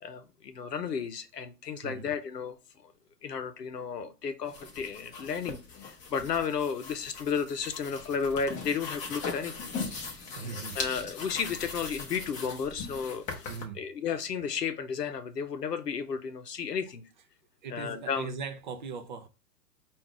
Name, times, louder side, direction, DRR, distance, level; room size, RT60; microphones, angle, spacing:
voice 1, 0.0-2.6 2.8-2.9 3.2-9.5 10.7-13.5 13.7-17.0 17.7-18.3, left 6 dB, 90° left, 0.8 m, -33 dB
sound 1, 4.4-13.6, left 4 dB, 15° left, 0.6 m, -40 dB
voice 2, 10.3-10.8 13.5-13.8 17.6-19.3, right 5 dB, 35° right, 0.4 m, -39 dB
4.7 x 2.5 x 3.6 m
hypercardioid pair, 115°, 47 cm